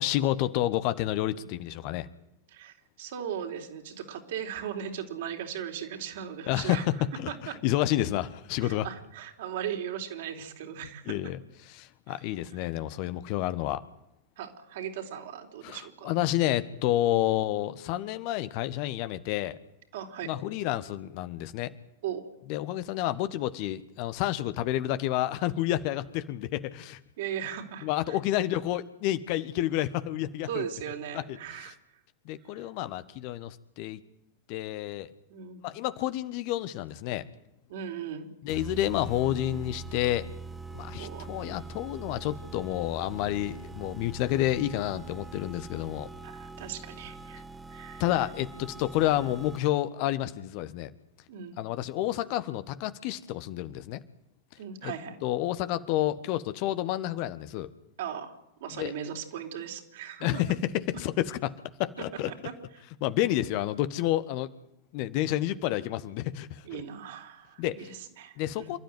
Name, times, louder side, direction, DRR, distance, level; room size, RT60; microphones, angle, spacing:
voice 1, 0.0-2.1 6.5-8.8 11.1-11.4 11.6-13.8 15.6-19.5 20.2-21.7 22.5-27.0 27.8-30.6 31.1-31.2 32.2-34.0 34.5-35.1 35.6-37.2 38.4-40.2 40.7-46.1 48.0-50.9 51.6-54.0 54.8-54.9 55.2-57.7 58.7-58.9 60.2-61.5 61.8-62.3 63.0-64.5 64.9-66.8 67.6-67.9 68.4-68.8, left 14 dB, 45° left, 13 dB, 1.3 m, -29 dB
voice 2, 2.5-6.9 7.3-7.6 8.6-11.1 12.1-12.2 12.5-12.6 14.4-16.1 19.9-20.3 22.0-22.2 27.2-28.2 28.5-28.6 30.5-31.8 32.5-32.7 35.3-35.7 37.7-38.3 40.9-41.4 46.2-47.4 47.7-48.0 51.3-51.6 54.6-55.2 58.0-60.4 62.3-62.5 66.6-68.7, right 9 dB, 55° right, 3 dB, 4.0 m, -38 dB
sound 1, 38.5-49.9, right 3 dB, 10° right, 1.4 m, -43 dB
28.0 x 13.0 x 9.5 m, 0.81 s
figure-of-eight pair, 90°, 0 cm